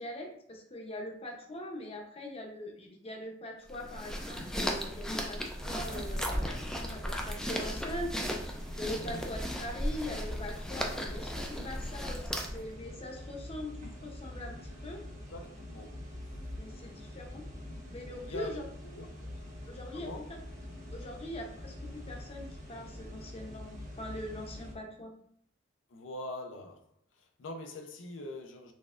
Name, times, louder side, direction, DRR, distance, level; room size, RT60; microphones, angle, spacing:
voice 1, 0.0-5.4 5.6-8.1 8.8-13.7 14.0-15.0 16.6-17.4 17.9-18.6 19.7-20.1 20.9-25.1, left 1 dB, 30° left, 0.7 m, -42 dB
sound 1, 3.7-12.7, equal, 5° left, 0.4 m, -36 dB
sound 2, 5.6-24.7, left 1 dB, 40° right, 1.1 m, -45 dB
voice 2, 15.3-16.1 17.7-17.8 18.2-19.1 19.4-19.6 19.9-20.3 25.9-26.9 27.1-28.7, left 1 dB, 85° left, 0.5 m, -44 dB
4.1 x 3.4 x 2.4 m
head